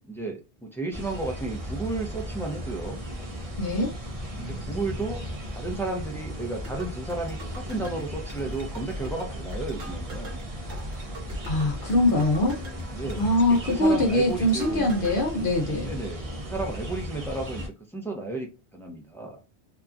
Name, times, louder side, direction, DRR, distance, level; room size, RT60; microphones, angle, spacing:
voice 1, 0.0-3.0 4.4-5.2 5.5-10.4 12.9-14.9 15.8-16.2 16.5-19.4, right 2 dB, 5° left, 0.5 m, -33 dB
sound 1, 0.9-17.7, equal, 40° right, 0.6 m, -36 dB
voice 2, 3.6-3.9 11.5-12.6 13.2-15.9, left 1 dB, 55° left, 0.8 m, -23 dB
sound 2, 6.6-15.2, equal, 80° right, 1.2 m, -41 dB
2.8 x 2.3 x 2.4 m
omnidirectional pair, 1.1 m